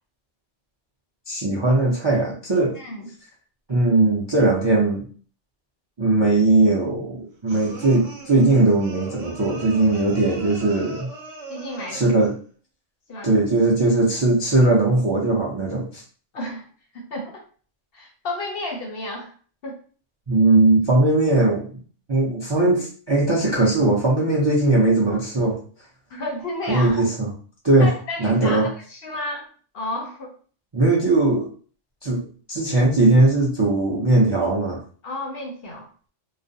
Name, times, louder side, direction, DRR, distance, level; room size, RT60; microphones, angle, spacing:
voice 1, 1.3-2.8 3.7-5.0 6.0-11.1 11.9-12.3 13.2-16.0 20.3-21.7 22.1-25.6 26.7-27.3 27.6-27.9 28.2-28.7 30.7-31.5 32.0-32.2 32.5-34.8, right 2 dB, 40° right, -4 dB, 0.3 m, -19 dB
voice 2, 2.7-3.1 11.5-12.1 13.1-13.3 16.3-16.7 16.9-17.4 17.9-19.3 19.6-19.8 26.1-27.1 27.8-29.5 29.7-30.3 35.0-35.9, left 2 dB, 60° left, 1 dB, 0.7 m, -32 dB
sound 1, 7.5-12.4, right 3 dB, 70° right, 0.9 m, -40 dB
2.4 x 2.0 x 2.6 m, 0.41 s
omnidirectional pair, 1.3 m